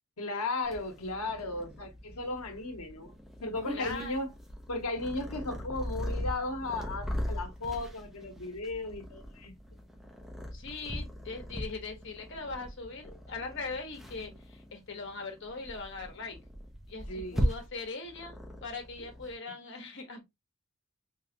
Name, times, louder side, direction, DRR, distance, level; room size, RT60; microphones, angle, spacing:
voice 1, 0.2-3.1 3.4-4.3 4.7-9.5 17.1-17.4 19.0-19.1, left 2 dB, 85° left, 1.0 m, -35 dB
Purr, 0.6-19.3, equal, ahead, 0.8 m, -39 dB
voice 2, 3.7-4.1 10.5-16.4 16.9-20.2, left 3 dB, 55° left, 1.1 m, -40 dB
3.4 x 3.2 x 2.8 m
head